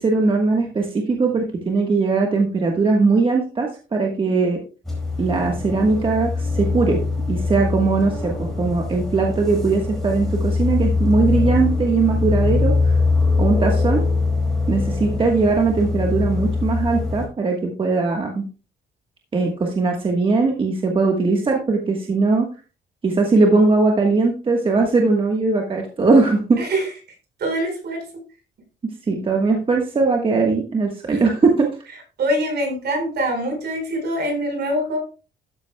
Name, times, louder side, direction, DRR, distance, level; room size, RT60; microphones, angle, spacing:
voice 1, 0.0-4.6 5.2-7.0 7.3-12.9 13.4-14.0 14.7-18.4 19.3-22.5 23.0-26.6 28.8-31.7, right 3 dB, 25° right, 1 dB, 1.3 m, -20 dB
sound 1, 4.8-17.3, left 3 dB, ahead, 4.4 m, -22 dB
voice 2, 26.6-26.9 27.4-28.0 31.1-31.2 32.2-35.0, right 1 dB, 60° right, 3 dB, 4.6 m, -24 dB
13.0 x 9.9 x 2.2 m, 0.34 s
wide cardioid pair, 180°, 20 cm